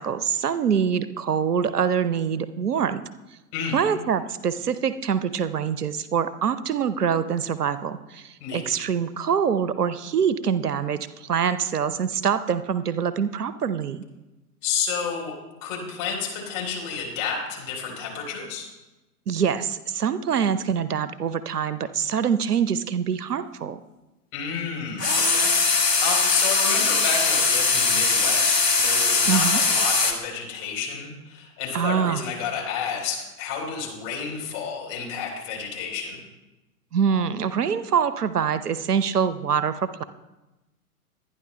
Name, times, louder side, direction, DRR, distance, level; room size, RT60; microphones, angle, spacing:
voice 1, 0.0-3.0 3.7-14.0 19.3-23.8 29.3-29.6 31.7-32.2 36.9-40.0, right 7 dB, 75° right, 14 dB, 0.7 m, -25 dB
voice 2, 14.6-18.7 24.3-36.2, left 6 dB, 30° left, -1 dB, 3.9 m, -31 dB
sound 1, 25.0-30.1, left 4 dB, 80° left, 1.9 m, -21 dB
23.0 x 9.9 x 2.2 m, 1.0 s
figure-of-eight pair, 105°, 47 cm